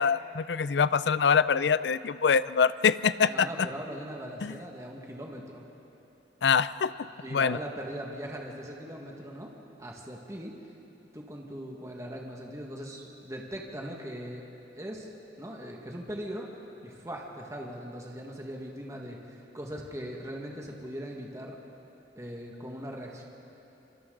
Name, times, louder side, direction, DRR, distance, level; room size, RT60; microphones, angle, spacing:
voice 1, 0.0-3.7 4.4-4.6 6.4-6.9 7.3-7.6, left 6 dB, 70° left, 16 dB, 0.5 m, -24 dB
voice 2, 3.3-5.6 7.2-9.5 9.8-10.5 11.0-14.4 14.8-15.1 15.4-16.5 16.8-21.6 22.1-23.2, equal, 15° right, -1 dB, 1.8 m, -40 dB
27.0 x 25.5 x 3.9 m, 2.9 s
head